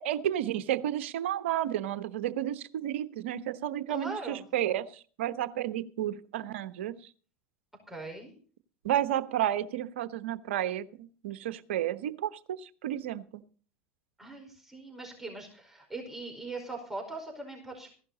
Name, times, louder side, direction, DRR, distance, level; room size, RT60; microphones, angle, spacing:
voice 1, 0.0-7.1 8.8-13.4, right 12 dB, 70° right, 12 dB, 1.0 m, -32 dB
voice 2, 3.9-4.5 7.9-8.3 14.2-17.9, right 2 dB, 5° right, 0 dB, 4.9 m, -40 dB
15.5 x 11.5 x 4.1 m, 0.41 s
hypercardioid pair, 85°, 7 cm